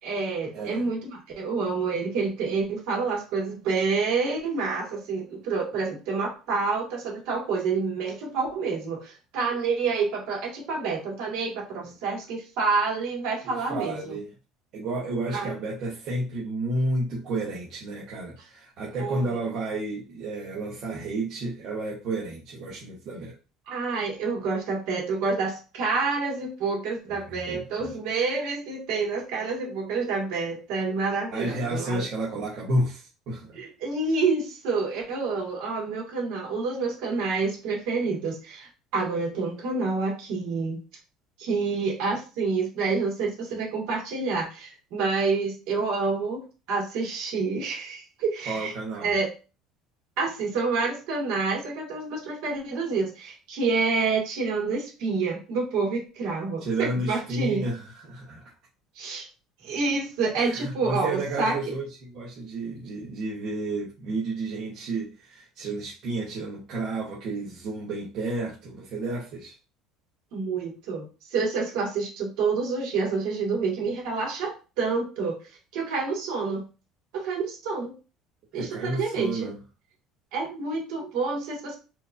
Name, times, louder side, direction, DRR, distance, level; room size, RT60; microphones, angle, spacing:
voice 1, 0.0-14.1 15.3-15.6 19.0-19.4 23.7-32.1 33.5-40.8 41.4-48.7 49.0-49.3 50.2-57.6 59.0-59.3 59.6-61.6 70.3-75.4 75.7-76.6 77.1-77.9 78.5-79.5 80.3-81.7, right 4 dB, 65° right, -1 dB, 1.9 m, -28 dB
voice 2, 0.5-0.9 13.4-14.3 14.7-23.3 27.1-27.9 31.3-33.6 48.5-49.1 56.6-58.4 60.3-69.5 78.5-79.6, right 2 dB, 45° right, -5 dB, 0.9 m, -31 dB
4.4 x 2.5 x 2.6 m, 0.32 s
cardioid pair, 165°, 0 cm